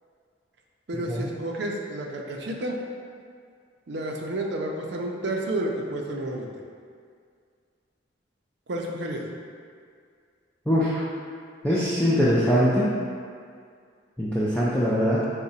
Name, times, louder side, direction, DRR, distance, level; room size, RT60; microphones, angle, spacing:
voice 1, 0.9-2.8 3.9-6.5 8.7-9.2, right 1 dB, 60° right, 0 dB, 0.5 m, -30 dB
voice 2, 10.7-11.0 11.6-12.9 14.2-15.3, equal, 5° left, -9 dB, 0.3 m, -22 dB
4.7 x 2.1 x 4.0 m, 2.2 s
head